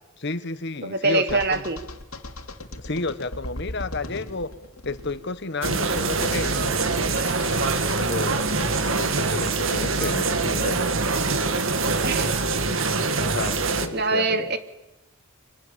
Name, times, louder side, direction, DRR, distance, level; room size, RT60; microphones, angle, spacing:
voice 1, 0.2-1.7 2.8-4.5 4.8-6.8 8.0-8.5 8.8-10.9 13.2-14.5, left 3 dB, 50° left, 1.2 m, -31 dB
voice 2, 0.8-1.8 12.0-12.3 13.9-14.6, right 2 dB, 50° right, 2.3 m, -23 dB
sound 1, 1.3-9.0, left 1 dB, 75° left, 2.7 m, -39 dB
sound 2, 5.6-13.9, right 3 dB, 65° right, 2.1 m, -24 dB
29.0 x 25.5 x 7.5 m
head